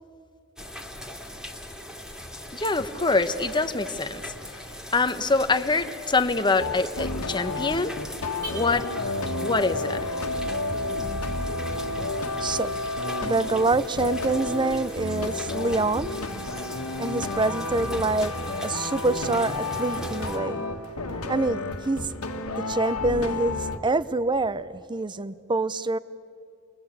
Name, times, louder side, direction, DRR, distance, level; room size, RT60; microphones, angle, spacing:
sound 1, 0.6-20.4, left 1 dB, 5° right, 2.3 m, -41 dB
voice 1, 2.5-4.6 4.9-8.0 8.5-8.9 9.4-10.0, left 3 dB, 20° left, 9 dB, 1.0 m, -25 dB
Car / Alarm, 2.6-11.8, right 1 dB, 80° right, 7.3 m, -50 dB
sound 2, 6.6-23.8, left 2 dB, 85° left, 1.6 m, -31 dB
voice 2, 12.4-12.7 13.2-16.1 17.0-18.3 18.6-20.7 21.3-22.1 22.5-26.0, right 2 dB, 20° right, 16 dB, 0.6 m, -26 dB
29.5 x 22.0 x 8.6 m, 2.5 s
head